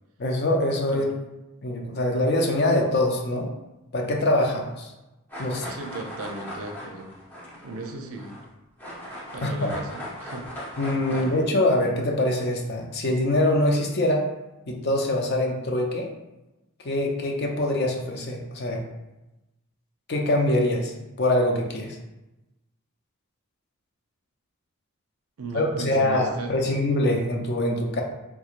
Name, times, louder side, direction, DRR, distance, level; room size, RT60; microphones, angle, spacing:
voice 1, 0.2-1.1 1.6-3.5 3.9-4.9 5.4-5.7 9.4-9.7 10.8-14.3 14.7-16.1 16.8-18.8 20.1-22.0 25.5-28.0, left 1 dB, 50° left, 1 dB, 0.5 m, -24 dB
sound 1, 5.3-8.5 8.8-11.4, left 1 dB, 10° left, 0.8 m, -38 dB
voice 2, 5.7-7.1 7.6-8.4 9.3-10.5 11.1-11.4 25.4-26.7, right 2 dB, 80° right, 3 dB, 0.5 m, -36 dB
3.5 x 3.0 x 2.4 m, 0.99 s
head